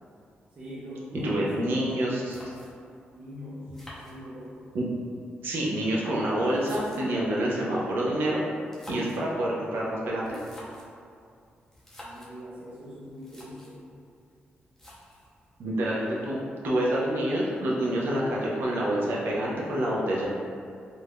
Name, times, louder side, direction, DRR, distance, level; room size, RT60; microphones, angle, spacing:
voice 1, 0.5-2.1 3.1-4.5 12.0-13.8, equal, 40° right, -9 dB, 0.5 m, -40 dB
voice 2, 1.2-2.3 4.7-4.8 5.4-8.4 8.9-10.4 15.6-20.3, right 1 dB, 80° right, -4 dB, 0.6 m, -27 dB
sound 1, 2.3-3.0 3.7-4.7 5.6-7.3 8.5-9.3 10.2-11.0 11.7-12.4 12.9-13.0 13.2-13.8 14.8-15.3, equal, 10° left, 0.5 m, -47 dB
2.6 x 2.2 x 3.4 m, 2.3 s
wide cardioid pair, 135°, 4 cm